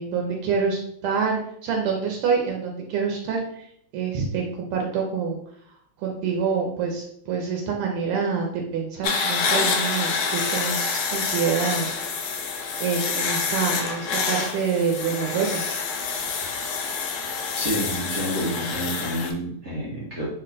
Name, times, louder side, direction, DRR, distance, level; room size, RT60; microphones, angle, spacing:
voice 1, 0.0-3.7 3.9-5.4 6.0-11.9 12.3-12.5 12.8-15.6, right 5 dB, 85° right, 1 dB, 1.5 m, -26 dB
sound 1, 9.0-19.3, left 5 dB, 85° left, 0.9 m, -27 dB
voice 2, 17.5-20.3, equal, 70° right, -6 dB, 0.6 m, -29 dB
3.6 x 2.2 x 3.7 m, 0.69 s
omnidirectional pair, 2.4 m